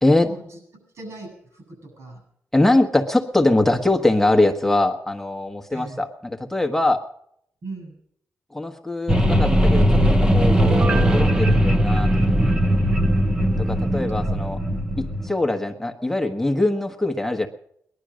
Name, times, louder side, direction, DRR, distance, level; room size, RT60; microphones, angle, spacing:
voice 1, 0.2-2.2 5.7-6.0 7.6-8.0 14.2-14.8, right 3 dB, 65° right, 4 dB, 7.9 m, -40 dB
voice 2, 2.5-7.0 8.5-10.7 11.1-12.1 13.6-14.6 15.0-17.5, left 2 dB, 5° left, 4 dB, 1.3 m, -22 dB
sound 1, 9.1-15.3, equal, 15° right, 1.1 m, -19 dB
Piano, 10.5-13.2 13.6-13.7, right 4 dB, 45° right, 1.1 m, -31 dB
19.5 x 11.5 x 6.4 m, 0.71 s
cardioid pair, 95°, 5 cm